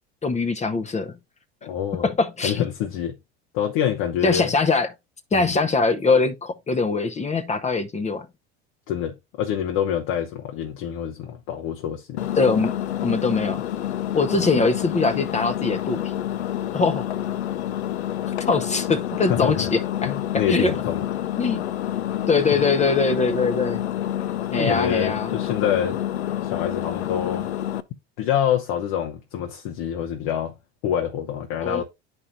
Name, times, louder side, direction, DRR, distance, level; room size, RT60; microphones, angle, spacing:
voice 1, 0.2-1.1 2.0-2.6 4.2-4.9 5.3-8.3 12.4-12.8 13.0-13.6 14.1-16.1 16.7-17.1 18.5-20.8 21.4-21.7 22.3-23.8 24.5-25.3 31.6-31.8, left 4 dB, 20° left, 0.7 m, -22 dB
voice 2, 1.6-2.1 2.4-3.1 3.5-4.5 5.3-5.6 8.9-12.3 19.2-19.7 20.0-21.0 24.6-26.0 26.4-27.5 28.2-30.5 30.8-31.8, left 9 dB, 60° left, 0.9 m, -26 dB
Engine, 12.2-27.8, left 11 dB, 90° left, 0.5 m, -28 dB
11.0 x 4.5 x 2.4 m
hypercardioid pair, 80°, 32 cm